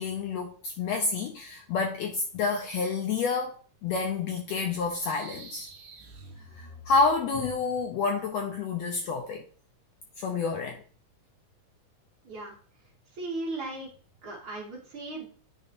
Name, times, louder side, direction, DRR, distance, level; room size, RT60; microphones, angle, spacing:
voice 1, 0.0-3.5 3.8-5.7 6.6-9.4 10.2-10.8, left 4 dB, 75° left, 1.6 m, -29 dB
sound 1, 4.8-7.6, right 1 dB, 60° right, 1.7 m, -48 dB
voice 2, 12.2-12.6 13.2-13.9 14.2-15.3, right 2 dB, 45° right, 2.2 m, -36 dB
9.7 x 4.1 x 2.7 m
omnidirectional pair, 3.6 m